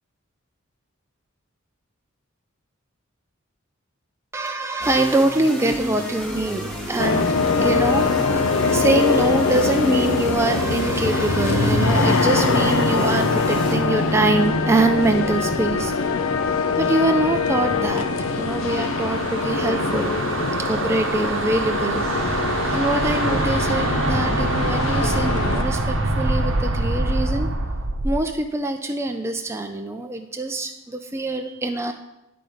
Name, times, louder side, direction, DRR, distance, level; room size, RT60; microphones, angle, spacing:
voice 1, 4.3-15.9 16.2-16.3 16.7-22.1 22.7-27.5 28.0-31.9, right 2 dB, 15° right, 5 dB, 0.4 m, -24 dB
sound 1, 4.8-14.5, right 1 dB, 5° left, 1.1 m, -31 dB
sound 2, 7.0-25.6, left 4 dB, 85° left, 0.6 m, -23 dB
sound 3, 18.5-28.2, right 2 dB, 70° right, 0.8 m, -25 dB
10.5 x 3.9 x 5.0 m, 0.92 s
head